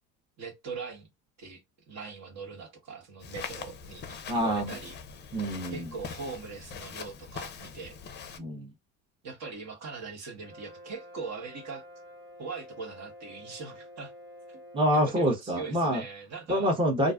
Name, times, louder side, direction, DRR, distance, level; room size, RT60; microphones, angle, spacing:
voice 1, 0.4-1.1 1.4-1.6 1.9-5.0 5.7-8.0 9.2-11.8 12.4-14.1 14.9-16.7, right 4 dB, 55° right, 1.2 m, -41 dB
Walk footsteps, 3.2-8.4, left 6 dB, 35° left, 0.5 m, -42 dB
voice 2, 4.3-4.7 5.3-5.9 8.4-8.7 14.7-16.0 16.5-17.1, equal, 15° right, 0.7 m, -26 dB
Brass instrument, 10.4-15.3, left 1 dB, 35° right, 1.2 m, -49 dB
2.5 x 2.3 x 2.2 m
cardioid pair, 115°, 31 cm